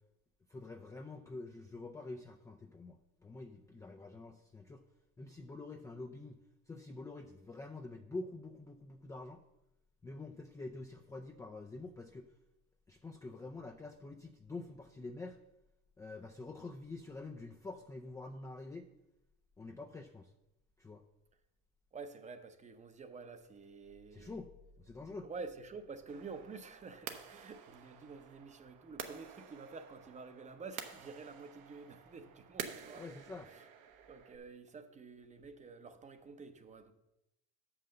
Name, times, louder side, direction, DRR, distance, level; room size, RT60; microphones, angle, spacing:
voice 1, 0.5-4.8 5.2-6.4 6.7-9.4 10.0-12.3 12.9-15.4 16.0-18.9 19.6-20.3 20.8-21.0 24.1-25.3 33.0-33.5, left 3 dB, 10° left, 0.4 m, -47 dB
voice 2, 21.9-24.4 25.2-33.0 33.5-33.7 34.1-36.9, right 4 dB, 20° right, 0.7 m, -49 dB
sound 1, 26.1-34.4, right 8 dB, 70° right, 1.0 m, -50 dB
6.4 x 5.7 x 6.6 m
supercardioid pair, 110°, 33 cm